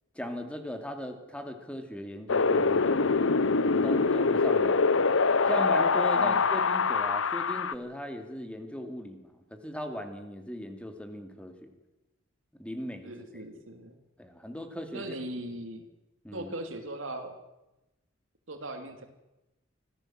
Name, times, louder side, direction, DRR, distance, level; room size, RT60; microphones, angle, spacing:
voice 1, 0.2-3.2 3.6-5.1 5.5-11.7 12.6-13.4 14.2-15.0 16.2-16.5, equal, 5° left, 6 dB, 2.5 m, -38 dB
Wind, 2.3-7.7, left 4 dB, 85° left, 0.9 m, -24 dB
voice 2, 13.0-13.9 14.9-15.9 16.3-17.4 18.5-19.1, right 1 dB, 90° right, 6 dB, 3.1 m, -39 dB
24.5 x 16.5 x 7.6 m, 0.99 s
head